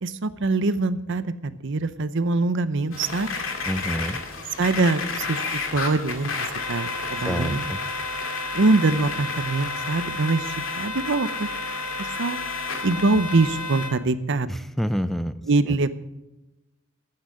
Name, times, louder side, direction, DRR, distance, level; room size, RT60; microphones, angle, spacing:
voice 1, 0.0-3.3 4.6-5.4 5.7-6.3 6.7-7.6 8.5-11.5 12.0-12.4 12.8-14.5 15.5-15.9, right 3 dB, 60° right, 13 dB, 0.7 m, -23 dB
sound 1, 2.9-13.9, left 3 dB, 75° left, 2.1 m, -31 dB
voice 2, 3.7-4.2 7.2-7.8 14.5-15.3 15.7-15.8, equal, ahead, 12 dB, 0.4 m, -27 dB
11.5 x 8.9 x 7.6 m, 0.97 s
head